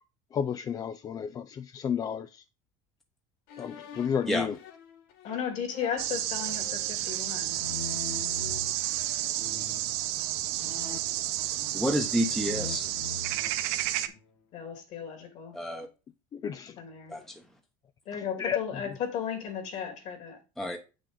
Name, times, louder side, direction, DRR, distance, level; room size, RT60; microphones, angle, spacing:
voice 1, 0.3-2.3 3.6-4.6 16.3-16.8 18.4-18.6, left 7 dB, 25° left, 0.3 m, -31 dB
sound 1, 3.5-8.7 9.4-9.9 10.5-12.0 12.3-14.3, left 6 dB, 70° left, 1.7 m, -44 dB
voice 2, 5.2-7.6 9.2-9.4 14.5-15.6 16.8-17.1 18.0-20.4, left 7 dB, 50° left, 3.0 m, -35 dB
sound 2, 6.0-14.1, right 14 dB, 70° right, 1.1 m, -31 dB
voice 3, 11.7-12.8 15.5-15.9 17.1-17.2 20.6-20.8, equal, ahead, 0.9 m, -29 dB
8.4 x 6.2 x 3.9 m
cardioid pair, 160°, 16 cm